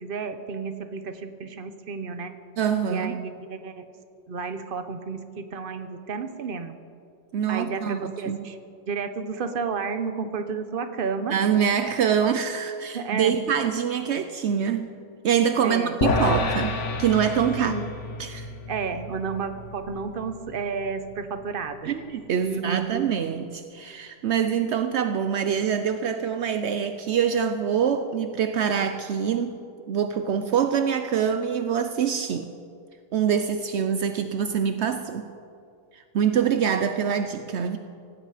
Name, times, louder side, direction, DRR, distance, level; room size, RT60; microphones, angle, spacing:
voice 1, 0.0-2.3 2.8-3.8 4.3-6.8 7.5-8.6 8.9-11.4 12.9-13.4 15.6-16.0 17.6-17.9 18.7-21.9 22.4-23.1, right 5 dB, 50° right, 9 dB, 1.1 m, -31 dB
voice 2, 2.6-3.2 7.3-8.4 11.3-14.9 15.2-17.7 18.2-18.5 21.8-29.6 29.9-32.5 33.1-35.3 35.9-37.8, right 7 dB, 70° right, 9 dB, 1.0 m, -25 dB
sound 1, 16.0-22.4, left 3 dB, 85° left, 1.5 m, -31 dB
18.0 x 16.5 x 5.0 m, 2.4 s
omnidirectional pair, 1.2 m